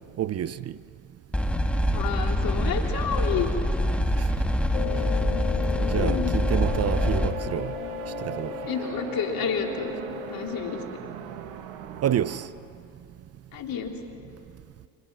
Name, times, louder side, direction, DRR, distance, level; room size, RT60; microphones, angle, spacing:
voice 1, 0.2-0.6 4.2-4.3 5.9-7.7 8.2-8.5 12.0-12.5, right 10 dB, 40° right, 0.7 m, -28 dB
sound 1, 1.3-7.3, equal, 5° left, 2.0 m, -25 dB
voice 2, 1.9-3.5 5.9-6.3 8.7-9.9 10.3-10.8 13.5-13.9, left 7 dB, 60° left, 3.6 m, -30 dB
sound 2, 4.7-10.9, left 12 dB, 85° left, 1.3 m, -35 dB
sound 3, 6.5-12.5, right 9 dB, 75° right, 1.8 m, -39 dB
29.5 x 26.5 x 6.2 m
supercardioid pair, 80°, 40 cm